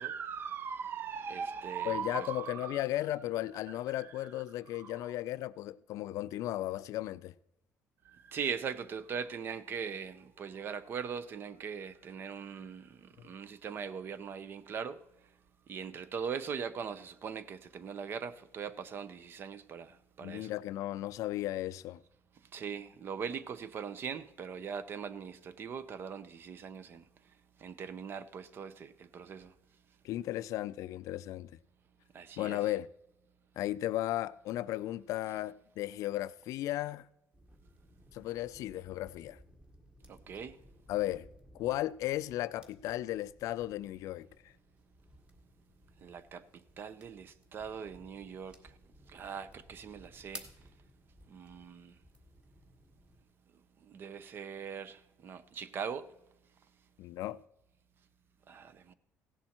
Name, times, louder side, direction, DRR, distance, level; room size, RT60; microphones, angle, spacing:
voice 1, 0.0-2.8 4.0-4.1 4.7-5.1 8.0-15.0 15.7-20.5 22.5-27.0 27.6-29.5 32.1-32.6 40.1-40.6 46.0-48.7 49.1-50.5 51.3-51.9 53.9-56.1 58.5-58.9, right 6 dB, 40° right, 0.7 m, -40 dB
voice 2, 1.9-7.3 20.2-22.0 30.0-31.5 32.4-32.9 33.6-37.1 38.1-39.4 40.9-41.3 41.5-44.3 57.0-57.4, left 14 dB, 70° left, 0.4 m, -35 dB
sound 1, 37.3-53.2, right 1 dB, 15° right, 1.7 m, -57 dB
16.5 x 10.5 x 4.4 m
cardioid pair, 155°, 6 cm